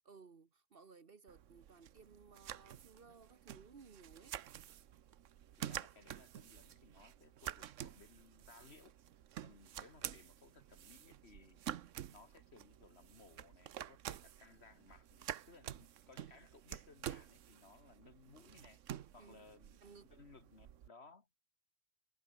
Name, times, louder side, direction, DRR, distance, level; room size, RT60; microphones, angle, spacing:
voice 1, 0.0-4.4 19.2-19.5 19.8-20.1, right 5 dB, 50° right, 1.4 m, -59 dB
sound 1, 1.3-20.9, right 11 dB, 80° right, 1.1 m, -49 dB
voice 2, 5.6-8.9 9.4-11.6 12.1-18.8 19.1-19.8 20.1-21.3, left 4 dB, 55° left, 2.4 m, -62 dB
omnidirectional pair, 1.3 m